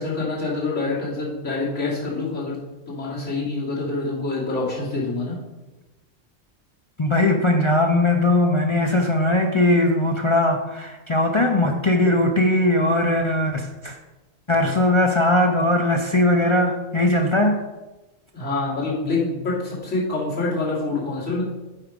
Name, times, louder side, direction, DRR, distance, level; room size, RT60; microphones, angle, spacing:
voice 1, 0.0-2.6 2.9-5.3 18.3-21.4, left 3 dB, 65° left, -8 dB, 3.2 m, -26 dB
voice 2, 7.0-14.0 14.5-17.6, left 1 dB, 45° left, 2 dB, 0.4 m, -19 dB
8.4 x 4.8 x 5.1 m, 1.1 s
omnidirectional pair, 1.3 m